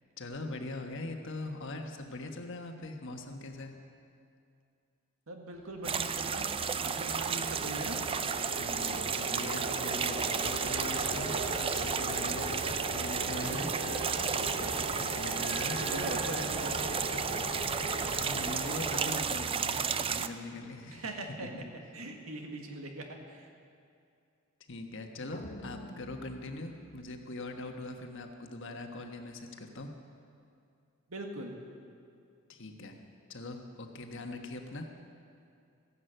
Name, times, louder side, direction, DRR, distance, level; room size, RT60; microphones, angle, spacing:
voice 1, 0.2-3.8 8.5-13.7 15.0-15.8 17.9-21.9 24.7-29.9 32.5-32.9 33.3-34.9, left 2 dB, 65° left, 4 dB, 1.4 m, -42 dB
voice 2, 5.3-6.5 6.8-8.0 15.7-16.8 20.9-21.7 21.9-23.5 31.1-31.6, right 2 dB, 80° right, 3 dB, 1.8 m, -41 dB
sound 1, 5.5-19.1, right 1 dB, 65° right, 3.9 m, -39 dB
sound 2, 5.8-20.3, right 6 dB, 25° right, 0.4 m, -33 dB
sound 3, 25.3-27.8, left 1 dB, 35° left, 0.8 m, -48 dB
14.5 x 11.0 x 7.9 m, 2.5 s
head